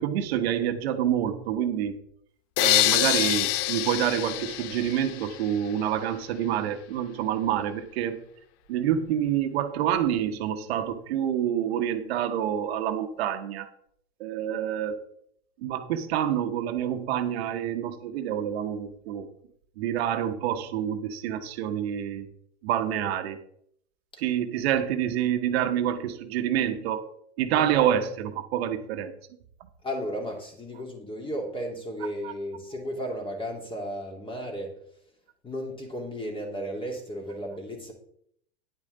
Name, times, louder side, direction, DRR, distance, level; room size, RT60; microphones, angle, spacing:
voice 1, 0.0-1.9 2.6-8.2 8.7-13.7 14.2-15.0 15.6-19.3 19.8-22.3 22.6-23.4 24.2-27.0 27.4-29.1 32.2-32.3, right 10 dB, 65° right, 7 dB, 1.2 m, -27 dB
sound 1, 2.6-5.6, left 17 dB, 45° left, 0.4 m, -25 dB
voice 2, 29.8-34.8 35.4-37.9, equal, 15° left, 2 dB, 2.4 m, -34 dB
9.8 x 8.5 x 3.9 m, 0.68 s
hypercardioid pair, 110°, 33 cm